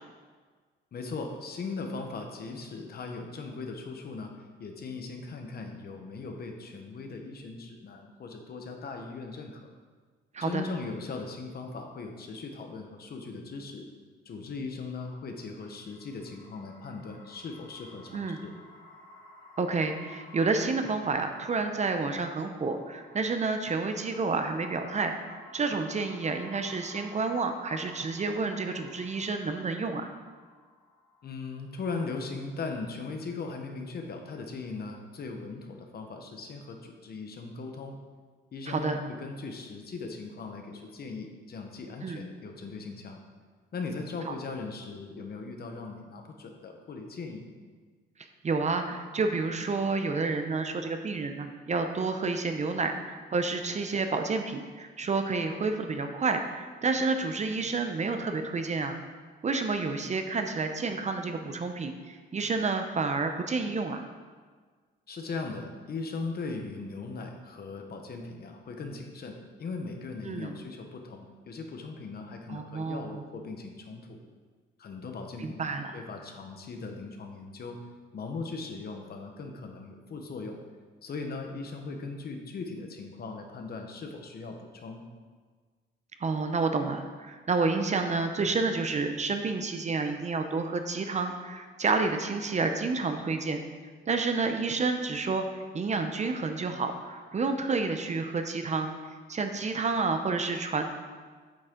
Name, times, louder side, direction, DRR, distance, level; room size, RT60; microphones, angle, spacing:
voice 1, 0.9-4.3 4.6-9.7 10.4-13.9 14.2-18.5 31.2-38.0 38.5-43.2 43.7-47.5 65.1-74.2 74.8-77.8 78.1-80.6 81.0-85.0, left 4 dB, 50° left, 3 dB, 1.1 m, -39 dB
sound 1, 15.2-32.4, left 2 dB, 90° left, 2.5 m, -53 dB
voice 2, 19.6-30.1 38.7-39.0 42.0-42.3 44.3-44.4 48.4-59.0 59.4-64.0 70.2-70.6 72.5-73.0 75.4-76.0 86.2-93.6 94.1-95.4 95.7-98.9 99.3-100.8, right 4 dB, 35° right, 6 dB, 0.7 m, -29 dB
8.7 x 6.4 x 3.8 m, 1.5 s
cardioid pair, 90°, 20 cm